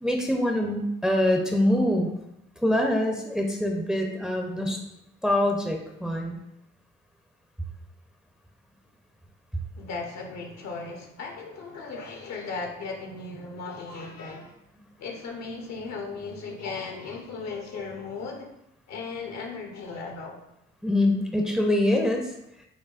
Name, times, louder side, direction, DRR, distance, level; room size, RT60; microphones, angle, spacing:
voice 1, 0.0-2.1 2.6-4.8 5.2-6.4 20.8-22.3, left 1 dB, ahead, 1 dB, 0.6 m, -24 dB
voice 2, 9.8-14.6 15.0-18.5 18.9-20.4, left 4 dB, 65° left, 2 dB, 0.9 m, -36 dB
5.6 x 2.2 x 2.4 m, 0.83 s
hypercardioid pair, 50°, 29 cm